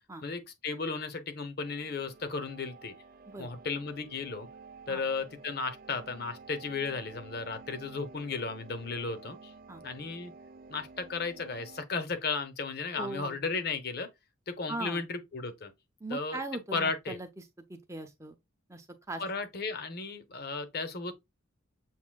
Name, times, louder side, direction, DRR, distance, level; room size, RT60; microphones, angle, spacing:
voice 1, 0.2-2.9 3.4-4.5 4.9-9.5 9.8-10.3 10.7-14.1 14.5-15.7 16.1-16.4 16.7-17.2 19.2-21.1, left 4 dB, 45° left, 0.8 m, -35 dB
sound 1, 1.6-11.8, right 4 dB, 40° right, 0.3 m, -51 dB
voice 2, 12.9-13.4 14.7-15.1 16.0-18.3 18.7-19.2, right 2 dB, 15° right, 0.7 m, -40 dB
7.3 x 2.7 x 2.2 m
head